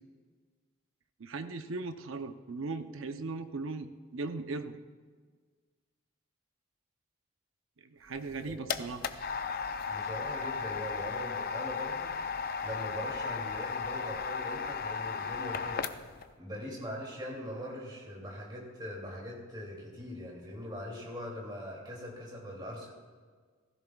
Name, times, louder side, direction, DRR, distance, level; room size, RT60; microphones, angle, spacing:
voice 1, 1.2-4.8 7.9-9.1, right 3 dB, 80° right, 8 dB, 0.7 m, -38 dB
sound 1, 8.1-16.3, left 5 dB, 45° left, 0.5 m, -35 dB
voice 2, 9.9-12.2 12.6-15.9 16.4-22.9, equal, 20° right, -3 dB, 2.6 m, -41 dB
16.0 x 14.5 x 2.3 m, 1.5 s
head